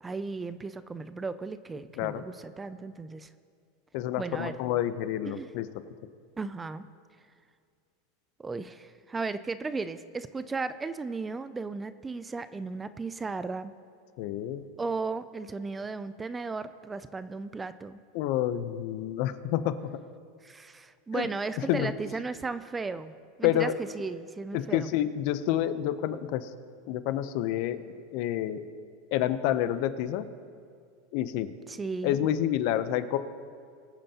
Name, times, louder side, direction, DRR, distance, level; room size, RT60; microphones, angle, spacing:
voice 1, 0.0-3.3 4.2-4.6 5.3-5.5 6.4-6.8 8.4-13.7 14.8-18.0 20.4-23.1 23.4-24.9 31.7-32.2, right 4 dB, 15° right, 13 dB, 0.3 m, -35 dB
voice 2, 3.9-5.7 14.2-14.6 18.1-19.7 21.1-21.3 21.7-21.9 23.4-23.7 24.5-26.5 26.9-27.8 28.1-28.7 29.1-30.3 31.1-31.5 32.0-33.2, left 12 dB, 55° left, 12 dB, 0.6 m, -28 dB
23.0 x 8.9 x 2.8 m, 2.2 s
supercardioid pair, 145°, 0 cm